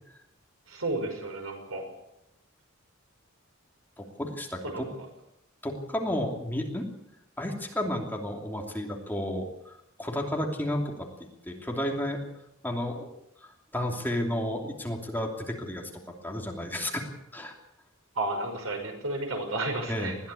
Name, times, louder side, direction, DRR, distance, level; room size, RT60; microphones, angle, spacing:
voice 1, 0.7-1.8 4.7-4.9 18.2-20.1, right 2 dB, 75° right, 3 dB, 5.9 m, -32 dB
voice 2, 4.0-4.9 5.6-6.8 7.4-11.1 11.5-12.2 12.6-13.1 13.7-15.9 16.2-17.5 19.9-20.2, left 1 dB, 10° left, 1 dB, 2.8 m, -32 dB
21.0 x 14.5 x 8.5 m, 0.83 s
head